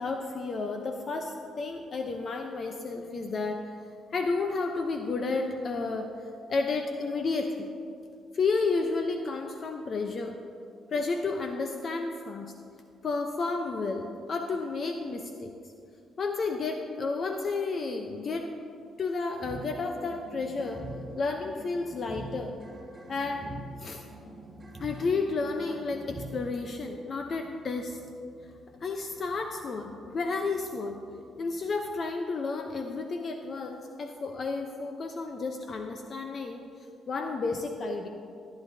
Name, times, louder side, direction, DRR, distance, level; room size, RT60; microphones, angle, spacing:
voice 1, 0.0-3.6 4.1-6.1 6.5-7.7 8.3-10.3 10.9-12.5 13.0-15.5 16.2-18.4 19.0-20.8 21.2-22.5 23.1-23.5 23.8-24.0 24.8-28.0 28.8-31.0 31.4-36.6 37.1-38.1, left 3 dB, 50° left, 4 dB, 0.7 m, -31 dB
sound 1, 19.4-32.1, right 2 dB, 25° right, 2.1 m, -46 dB
14.0 x 10.0 x 2.7 m, 2.3 s
cardioid pair, 90°, 0 cm